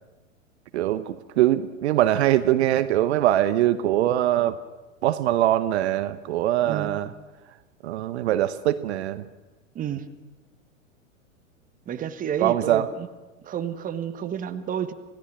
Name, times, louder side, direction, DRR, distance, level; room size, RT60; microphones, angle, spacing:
voice 1, 0.7-4.6 5.0-7.1 7.8-9.2 12.4-12.9, right 13 dB, 55° right, 12 dB, 1.0 m, -22 dB
voice 2, 6.6-7.0 9.7-10.1 11.9-13.1 13.4-14.9, right 8 dB, 20° right, 9 dB, 1.3 m, -30 dB
28.0 x 17.0 x 6.1 m, 1.2 s
figure-of-eight pair, 100°, 39 cm